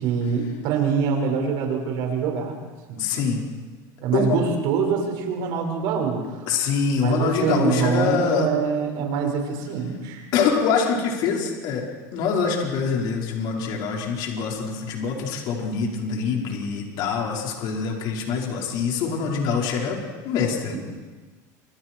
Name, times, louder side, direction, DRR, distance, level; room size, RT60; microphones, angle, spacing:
voice 1, 0.0-2.6 2.9-3.0 4.0-6.5 7.0-10.3 20.7-20.8, right 6 dB, 60° right, 2 dB, 5.7 m, -24 dB
voice 2, 3.0-3.4 4.1-4.4 6.5-8.5 10.3-11.9 12.1-20.8, left 6 dB, 55° left, -1 dB, 4.9 m, -24 dB
29.0 x 26.0 x 4.7 m, 1.3 s
cardioid pair, 145°, 9 cm